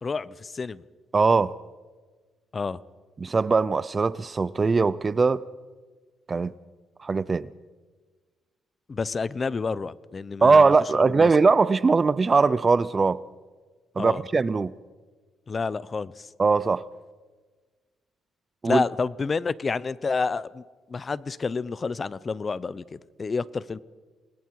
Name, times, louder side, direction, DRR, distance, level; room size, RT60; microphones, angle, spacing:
voice 1, 0.0-0.8 2.5-2.8 8.9-11.3 14.0-14.2 15.5-16.3 18.6-20.6 20.9-23.8, left 4 dB, 35° left, 0.7 m, -29 dB
voice 2, 1.1-1.6 3.2-5.5 6.3-6.5 7.0-7.5 10.4-13.2 14.0-14.7 16.4-16.9 18.6-18.8, right 4 dB, 30° right, 0.6 m, -21 dB
28.5 x 20.5 x 4.8 m
cardioid pair, 90°, 0 cm